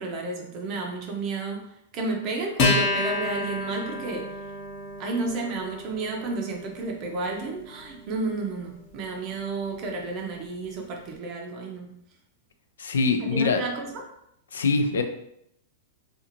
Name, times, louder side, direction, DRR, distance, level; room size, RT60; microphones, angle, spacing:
voice 1, 0.0-1.7 1.9-4.3 5.0-12.0 13.2-14.0, right 3 dB, 40° right, 1 dB, 0.5 m, -31 dB
Acoustic guitar, 2.6-9.4, left 2 dB, 45° left, 0.8 m, -31 dB
voice 2, 12.8-13.6 14.5-15.0, left 4 dB, 90° left, 6 dB, 0.4 m, -23 dB
2.5 x 2.4 x 2.8 m, 0.76 s
hypercardioid pair, 130°, 0 cm